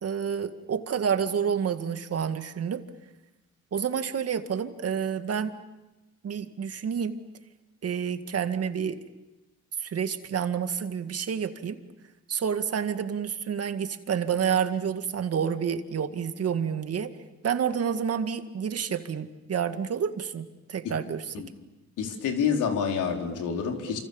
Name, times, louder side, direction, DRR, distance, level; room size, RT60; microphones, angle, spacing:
voice 1, 0.0-2.8 3.7-5.6 6.2-7.2 7.8-9.0 9.8-11.8 12.3-17.1 17.4-21.3, right 7 dB, 55° right, 8 dB, 2.1 m, -29 dB
voice 2, 22.0-24.0, left 6 dB, 85° left, 3 dB, 4.5 m, -28 dB
29.0 x 26.5 x 7.2 m, 1.0 s
cardioid pair, 90°, 30 cm